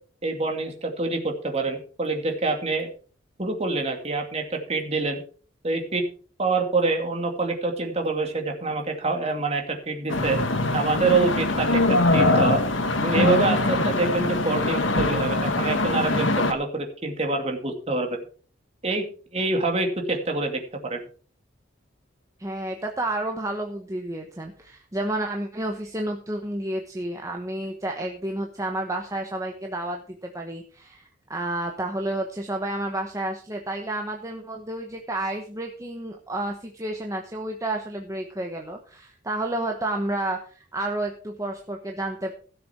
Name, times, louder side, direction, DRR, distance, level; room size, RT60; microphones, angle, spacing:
voice 1, 0.2-2.9 3.4-5.2 5.6-6.0 6.4-10.4 10.7-12.6 13.0-18.2 18.8-19.0 19.3-20.6 20.9-21.0, right 3 dB, 35° right, 3 dB, 2.4 m, -26 dB
sound 1, 10.1-16.5, left 2 dB, 80° left, 1.5 m, -23 dB
voice 2, 22.4-42.3, right 1 dB, 15° right, 2 dB, 1.1 m, -30 dB
16.5 x 6.9 x 4.6 m, 0.42 s
head